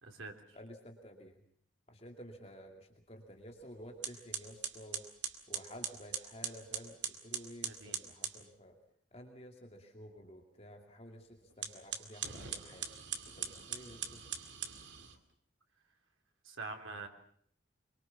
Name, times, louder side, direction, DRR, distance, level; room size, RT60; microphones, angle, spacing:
voice 1, 0.0-0.3 7.6-8.0 16.4-17.1, right 3 dB, 90° right, 4 dB, 3.6 m, -44 dB
voice 2, 0.5-1.4 1.9-5.1 5.5-8.7 9.1-13.0 13.4-14.2, equal, 30° left, 3 dB, 2.5 m, -52 dB
sound 1, 3.5-3.6 4.0-8.4 11.5-15.2, right 8 dB, 65° right, 2.4 m, -41 dB
24.5 x 23.5 x 7.2 m, 0.62 s
head